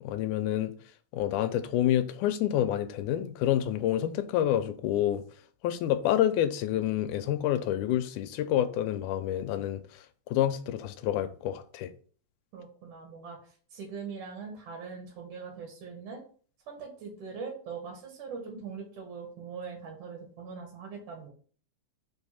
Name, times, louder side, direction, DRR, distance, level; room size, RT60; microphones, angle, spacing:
voice 1, 0.0-0.7 1.1-5.2 5.6-9.8 10.3-11.9, left 11 dB, 85° left, 2.1 m, -28 dB
voice 2, 12.5-13.4 13.7-16.2 16.7-21.3, right 5 dB, 75° right, 2.9 m, -41 dB
5.4 x 3.5 x 5.7 m
omnidirectional pair, 3.6 m